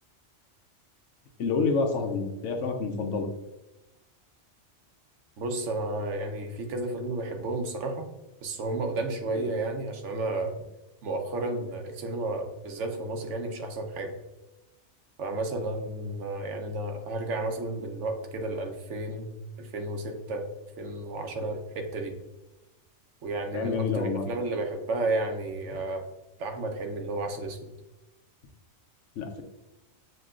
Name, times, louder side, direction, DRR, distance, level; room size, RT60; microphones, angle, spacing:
voice 1, 1.4-3.3 9.3-9.4 23.5-24.2 29.2-29.4, left 4 dB, 85° left, 4 dB, 1.1 m, -28 dB
voice 2, 5.4-8.1 8.4-10.5 11.0-14.1 15.2-19.3 19.6-20.5 20.8-22.2 23.2-26.1 26.4-27.7, right 2 dB, 85° right, 4 dB, 1.1 m, -32 dB
7.6 x 2.9 x 2.4 m, 1.0 s
omnidirectional pair, 1.2 m